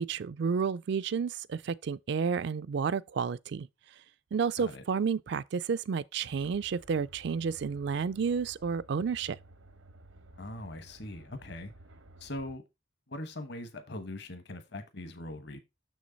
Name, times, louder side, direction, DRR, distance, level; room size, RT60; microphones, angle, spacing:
voice 1, 0.0-3.7 4.3-9.4, right 6 dB, 60° right, 0.3 m, -31 dB
sound 1, 6.3-12.6, right 1 dB, 90° right, 1.1 m, -55 dB
voice 2, 10.3-11.7 12.2-12.6 13.1-15.6, left 1 dB, 60° left, 1.1 m, -41 dB
6.7 x 6.3 x 3.9 m
head